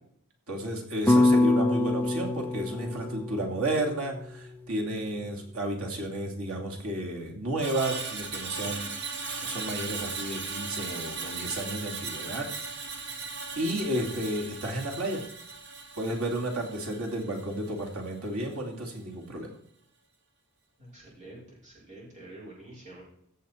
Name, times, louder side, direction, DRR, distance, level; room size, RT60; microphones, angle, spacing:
voice 1, 0.5-8.9 9.4-12.5 13.5-15.2 16.0-19.5, right 1 dB, 85° right, 0 dB, 2.6 m, -32 dB
sound 1, 1.1-5.3, left 2 dB, 10° left, 0.6 m, -26 dB
Screech, 7.6-17.9 18.3-18.5, right 4 dB, 55° right, 1.6 m, -38 dB
voice 2, 20.9-23.0, right 2 dB, 35° right, -5 dB, 5.2 m, -47 dB
15.5 x 6.7 x 4.5 m, 0.69 s
head